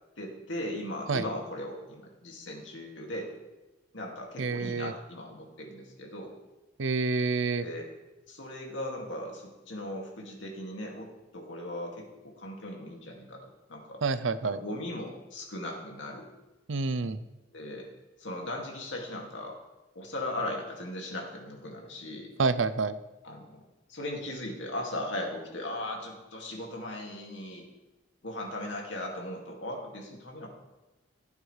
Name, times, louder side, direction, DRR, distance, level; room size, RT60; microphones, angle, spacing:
voice 1, 0.2-3.3 3.9-6.3 7.6-7.9 8.3-13.4 13.7-14.0 14.4-16.3 17.5-17.9 18.2-19.6 19.9-22.3 23.2-23.6 23.9-27.7 28.2-30.5, left 1 dB, 80° left, 0 dB, 2.4 m, -38 dB
voice 2, 4.4-4.9 6.8-7.7 14.0-14.6 16.7-17.2 22.4-23.0, right 4 dB, 85° right, 14 dB, 0.6 m, -28 dB
15.5 x 8.8 x 3.4 m, 1.1 s
head